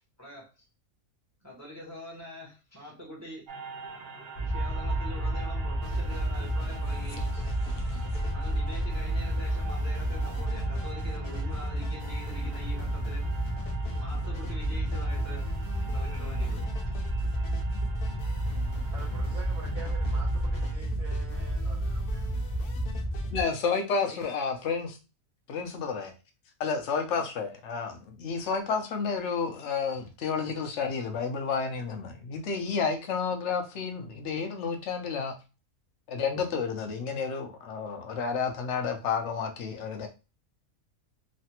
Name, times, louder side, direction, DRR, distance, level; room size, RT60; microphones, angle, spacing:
voice 1, 0.2-0.7 1.4-3.4 4.4-7.3 8.3-13.2 14.0-15.5 15.8-16.7 24.0-24.2 27.1-27.2, equal, 15° right, -2 dB, 0.6 m, -45 dB
sound 1, 3.5-20.8, right 4 dB, 55° right, 0.7 m, -46 dB
sound 2, 4.4-23.4, right 1 dB, 40° left, 0.5 m, -31 dB
sound 3, 5.8-24.4, left 6 dB, 90° left, 1.1 m, -50 dB
voice 2, 7.7-8.0 23.3-25.0 25.5-26.1 26.6-35.3 36.1-40.1, left 5 dB, 65° left, 5 dB, 0.8 m, -31 dB
voice 3, 18.9-22.4, right 4 dB, 75° right, -1 dB, 1.3 m, -47 dB
3.2 x 2.1 x 2.8 m, 0.30 s
omnidirectional pair, 1.5 m